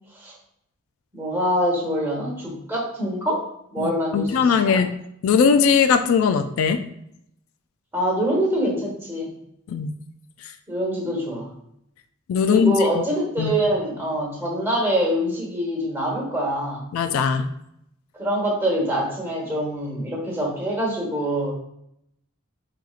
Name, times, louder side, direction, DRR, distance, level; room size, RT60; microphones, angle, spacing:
voice 1, 1.1-3.4 3.7-4.8 7.9-9.3 10.7-11.5 12.5-16.9 18.2-21.5, equal, 10° right, -3 dB, 1.2 m, -25 dB
voice 2, 3.8-4.9 5.2-6.8 9.7-9.9 12.3-13.0 13.4-13.5 16.9-17.5, left 6 dB, 70° left, 10 dB, 0.3 m, -20 dB
4.3 x 3.9 x 2.4 m, 0.76 s
head